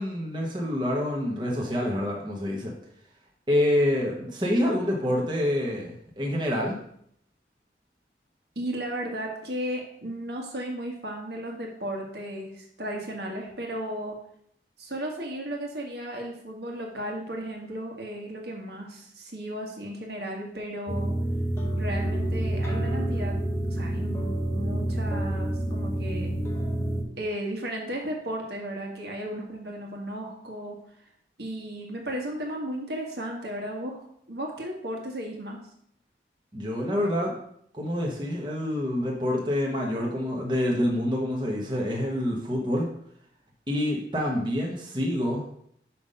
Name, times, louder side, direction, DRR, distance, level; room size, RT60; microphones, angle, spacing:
voice 1, 0.0-2.7 3.5-6.8 36.5-37.4 37.7-42.9 43.7-45.5, left 1 dB, 25° right, -2 dB, 1.0 m, -27 dB
voice 2, 8.5-14.2 14.8-21.1 21.8-23.4 23.7-26.3 27.2-30.8 31.4-35.6, right 1 dB, 70° right, 0 dB, 1.6 m, -35 dB
sound 1, 20.9-27.0, right 1 dB, 15° left, 0.9 m, -28 dB
5.8 x 5.0 x 5.4 m, 0.68 s
head